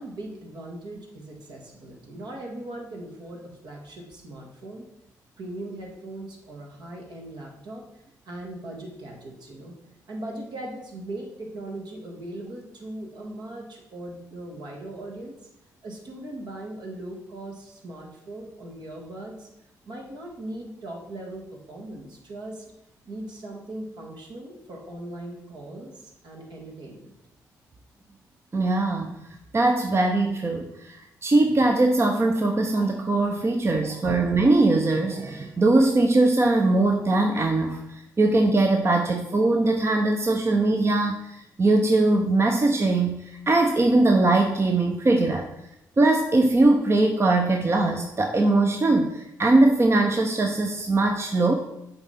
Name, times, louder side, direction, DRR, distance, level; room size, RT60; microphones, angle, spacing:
voice 1, 0.0-4.9 5.4-7.8 8.2-9.7 10.1-15.4 15.8-19.5 19.8-22.6 23.0-27.1, right 1 dB, 65° right, -1 dB, 1.6 m, -39 dB
voice 2, 28.5-29.2 29.5-37.8 38.2-41.1 41.6-45.5 46.0-51.5, right 2 dB, 35° right, 4 dB, 0.7 m, -21 dB
6.9 x 4.1 x 4.2 m, 0.83 s
hypercardioid pair, 45°, 8 cm